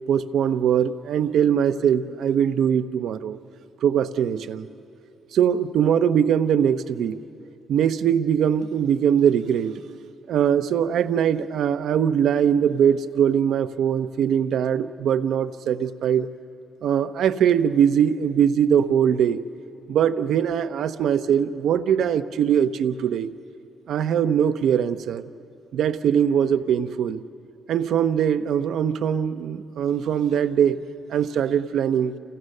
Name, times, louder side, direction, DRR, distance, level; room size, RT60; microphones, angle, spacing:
voice 1, 0.1-3.4 3.8-4.7 5.3-7.2 7.7-9.8 10.3-16.3 16.8-19.4 19.9-23.3 23.9-25.3 25.7-27.2 27.7-30.8 31.1-32.1, right 8 dB, 70° right, 10 dB, 0.8 m, -21 dB
29.0 x 29.0 x 6.6 m, 2.8 s
cardioid pair, 160°, 0 cm